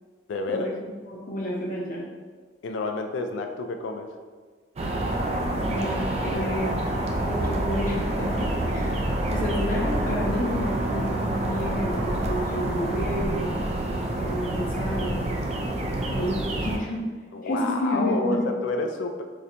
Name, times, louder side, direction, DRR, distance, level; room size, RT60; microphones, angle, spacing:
voice 1, 0.3-0.7 2.6-4.1 17.3-19.2, left 3 dB, 80° left, 5 dB, 0.3 m, -29 dB
voice 2, 1.1-2.0 5.5-6.8 7.2-8.9 9.3-13.5 14.2-15.3 16.1-17.0 17.4-18.5, equal, 45° left, -3 dB, 0.6 m, -30 dB
sound 1, 4.8-16.8, right 1 dB, 35° right, 0.3 m, -27 dB
4.1 x 2.1 x 2.5 m, 1.5 s
head